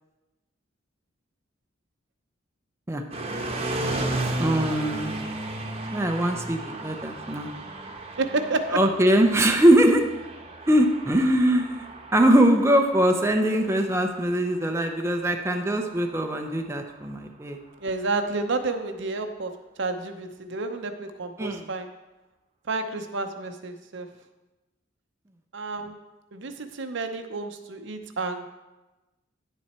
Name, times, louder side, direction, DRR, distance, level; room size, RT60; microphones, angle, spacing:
sound 1, 3.1-17.1, right 2 dB, 30° right, 1.0 m, -35 dB
voice 1, 4.4-5.2 5.9-7.5 8.7-10.0 10.7-11.9 12.1-17.6 21.4-21.6, right 1 dB, 15° right, 3 dB, 0.6 m, -22 dB
voice 2, 8.2-8.8 17.8-19.5 19.8-21.9 22.7-24.1 25.5-26.0 26.3-28.5, right 3 dB, 65° right, 7 dB, 0.8 m, -30 dB
10.0 x 7.4 x 4.3 m, 1.1 s
head